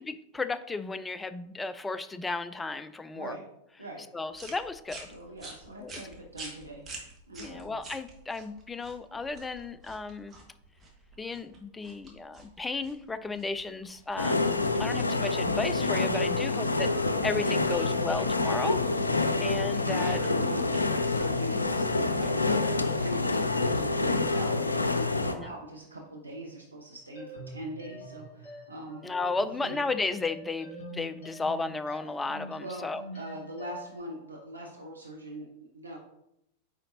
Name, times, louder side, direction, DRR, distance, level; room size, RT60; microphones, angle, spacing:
voice 1, 0.0-3.4 4.1-5.1 5.8-5.9 7.4-10.4 11.2-16.9 17.2-18.8 19.4-20.2 25.4-25.5 29.0-33.0, left 3 dB, 10° left, 13 dB, 0.3 m, -34 dB
sound 1, 4.3-23.9, right 2 dB, 20° right, 1.5 m, -50 dB
voice 2, 5.1-7.8 16.4-16.9 19.1-19.5 19.9-29.1 29.4-29.8 32.6-32.9 33.1-36.0, right 1 dB, 85° right, -1 dB, 0.9 m, -42 dB
sound 2, 14.2-25.4, left 3 dB, 80° left, 0.4 m, -27 dB
sound 3, 27.2-34.0, equal, 55° left, 1.6 m, -46 dB
9.1 x 3.9 x 2.7 m, 0.79 s
figure-of-eight pair, 90°, 0 cm